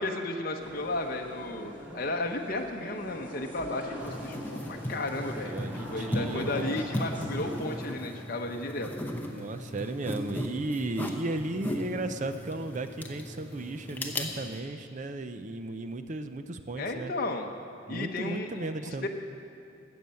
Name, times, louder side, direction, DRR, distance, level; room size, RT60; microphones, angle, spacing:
voice 1, 0.0-5.6 5.9-8.9 16.8-17.5 17.9-19.1, left 2 dB, 45° left, 3 dB, 0.8 m, -34 dB
sound 1, 0.6-7.9, equal, 10° right, 2.2 m, -43 dB
sound 2, 4.0-14.6, left 1 dB, 10° left, 0.7 m, -37 dB
voice 2, 5.4-6.8 9.2-17.1 17.9-19.1, right 2 dB, 35° right, 9 dB, 0.5 m, -35 dB
12.5 x 7.9 x 7.6 m, 2.7 s
head